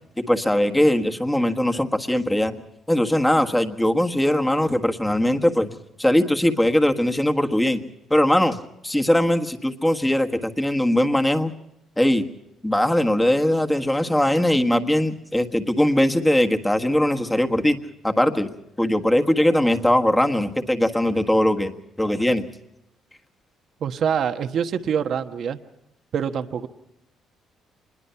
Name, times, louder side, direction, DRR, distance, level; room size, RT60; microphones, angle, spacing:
voice 1, 0.2-2.6 2.9-5.7 6.0-7.8 8.1-11.5 12.0-12.3 12.6-17.8 18.0-21.7 22.0-22.5, left 1 dB, 10° left, 6 dB, 1.5 m, -20 dB
voice 2, 23.8-25.6 26.1-26.7, right 7 dB, 60° right, 7 dB, 1.2 m, -25 dB
25.5 x 21.0 x 5.8 m, 0.83 s
cardioid pair, 95°, 0 cm